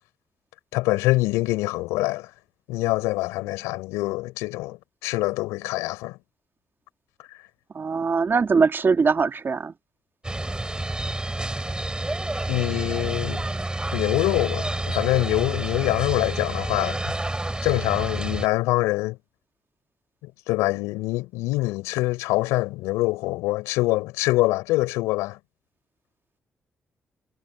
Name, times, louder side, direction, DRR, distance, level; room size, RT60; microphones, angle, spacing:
voice 1, 0.7-2.3 2.7-6.2 12.5-13.4 13.9-17.0 17.6-19.2 20.2-25.4, left 20 dB, 90° left, 4.5 m, -25 dB
voice 2, 7.7-9.7, right 5 dB, 50° right, 2.0 m, -21 dB
sound 1, 10.2-18.5, right 2 dB, 15° right, 5.2 m, -29 dB
hypercardioid pair, 45°, 5 cm